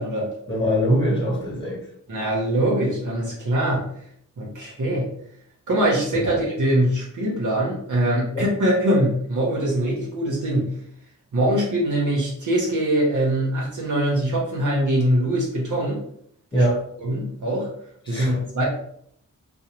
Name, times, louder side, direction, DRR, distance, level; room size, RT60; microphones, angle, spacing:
voice 1, 0.5-1.8 6.2-6.3 8.3-8.4 16.5-16.8 18.1-18.4, equal, 15° left, -5 dB, 1.0 m, -22 dB
voice 2, 2.1-4.0 4.4-5.2 5.7-10.8 11.3-16.0 16.5-16.7 17.0-17.7 18.1-18.6, right 1 dB, 65° right, -4 dB, 0.8 m, -23 dB
2.6 x 2.0 x 2.9 m, 0.68 s
wide cardioid pair, 65°, 33 cm